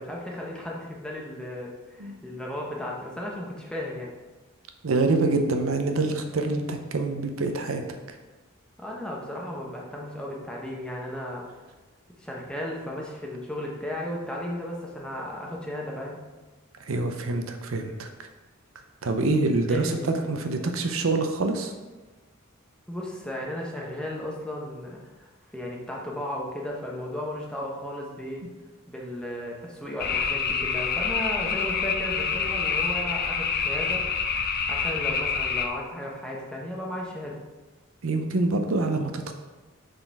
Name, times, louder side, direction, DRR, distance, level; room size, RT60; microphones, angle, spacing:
voice 1, 0.0-4.1 8.8-11.5 12.2-16.2 19.7-20.3 22.9-28.4 28.9-34.0 34.7-37.4, left 1 dB, 5° left, -3 dB, 1.0 m, -35 dB
voice 2, 4.8-7.8 16.8-18.1 19.0-21.7 38.0-39.3, right 3 dB, 80° right, 6 dB, 0.7 m, -26 dB
sound 1, 30.0-35.7, left 5 dB, 50° left, 0.6 m, -27 dB
6.5 x 4.0 x 4.6 m, 1.2 s
head